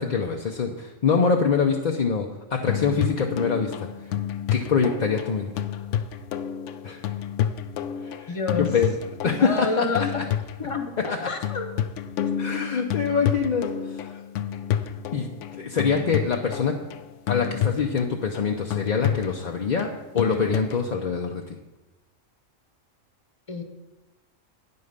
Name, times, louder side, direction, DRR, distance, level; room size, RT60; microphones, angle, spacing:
voice 1, 0.0-4.1 4.5-5.5 6.8-7.1 8.0-8.9 9.2-10.2 11.1-11.3 12.4-14.2 15.1-16.7 17.3-19.9 20.1-21.4, left 5 dB, 45° left, 1 dB, 0.6 m, -25 dB
sound 1, 2.7-20.8, left 10 dB, 75° left, 0.9 m, -30 dB
voice 2, 8.3-8.7 9.4-10.2 10.6-11.8 23.5-23.6, left 4 dB, 30° left, 5 dB, 0.9 m, -29 dB
9.7 x 5.4 x 6.5 m, 1.1 s
omnidirectional pair, 1.3 m